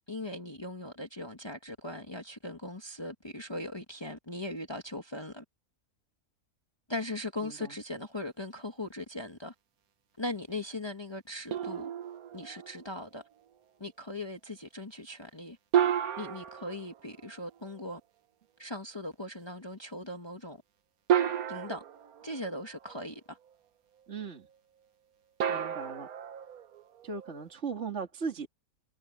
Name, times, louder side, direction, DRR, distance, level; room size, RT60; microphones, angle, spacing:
voice 1, 0.0-5.4 6.9-9.5 10.2-11.9 12.3-13.2 13.8-15.6 16.2-18.0 18.6-20.6 21.5-21.8 22.2-23.4, left 1 dB, 20° left, 1.7 m, -39 dB
sound 1, 11.5-13.0 15.7-17.7 19.4-19.5 21.1-23.0 25.4-27.4, right 9 dB, 80° right, 1.5 m, -32 dB
voice 2, 24.1-24.5 25.5-26.1 27.0-28.5, right 5 dB, 50° right, 2.4 m, -38 dB
omnidirectional pair, 1.5 m